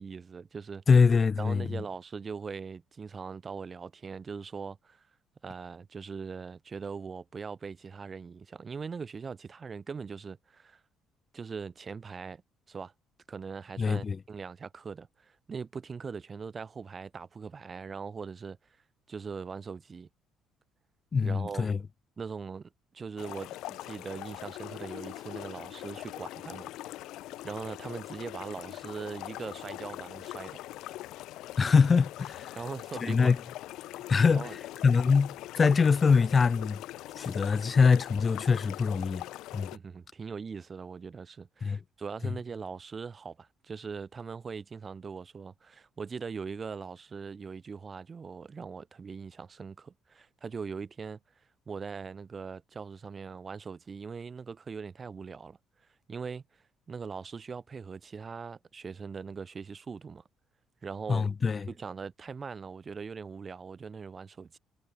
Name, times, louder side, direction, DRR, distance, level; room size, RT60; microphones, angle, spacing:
voice 1, 0.0-0.8 1.4-5.1 5.4-10.8 11.3-12.4 12.7-12.9 13.3-18.6 19.1-20.1 21.2-21.7 22.2-26.7 27.4-30.6 32.5-33.3 34.3-34.6 39.7-51.2 51.7-55.6 56.1-60.2 60.8-61.3 61.7-64.6, right 5 dB, 40° right, 1.0 m, -41 dB
voice 2, 0.9-1.7 13.8-14.2 21.1-21.8 31.6-32.6 33.0-33.4 34.1-36.8 37.2-39.2 39.5-39.7 41.6-41.8 61.1-61.7, left 5 dB, 40° left, 0.3 m, -24 dB
sound 1, 23.2-39.8, left 16 dB, 70° left, 3.4 m, -42 dB
hypercardioid pair, 60°, 0 cm